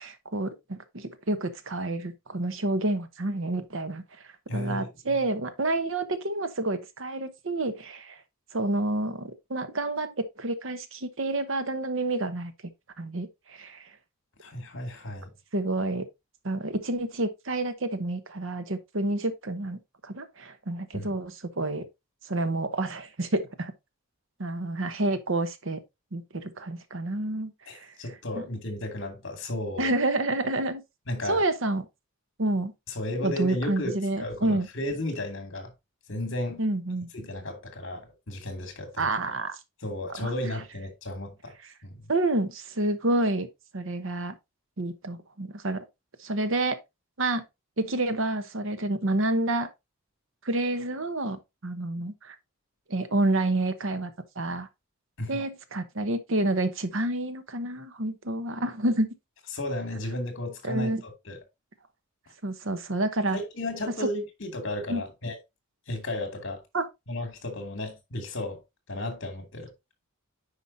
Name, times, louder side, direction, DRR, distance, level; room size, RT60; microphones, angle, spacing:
voice 1, 0.0-4.0 4.5-8.2 8.5-12.5 13.0-13.9 15.5-16.1 16.4-21.9 22.3-23.7 24.4-25.8 26.1-27.9 28.4-28.5 29.8-30.8 31.3-31.8 32.4-32.7 33.2-34.7 36.6-37.1 39.0-39.6 40.2-40.3 42.1-43.5 43.7-44.4 44.8-45.8 46.2-46.8 47.2-47.4 47.8-49.7 50.4-52.3 52.9-54.7 55.3-59.1 60.6-61.0 62.4-63.4 64.0-64.1 64.9-65.0 66.7-66.9, right 2 dB, 60° right, 1.0 m, -29 dB
voice 2, 4.5-4.9 14.4-15.3 20.9-21.1 27.7-30.0 31.1-31.4 32.9-33.9 34.2-35.7 36.1-36.6 37.1-39.1 39.8-41.5 41.8-42.0 55.2-55.5 59.5-61.4 63.3-65.4 65.9-66.6 67.1-68.6 68.9-69.7, left 1 dB, 55° left, 2.4 m, -34 dB
9.7 x 5.0 x 2.7 m
head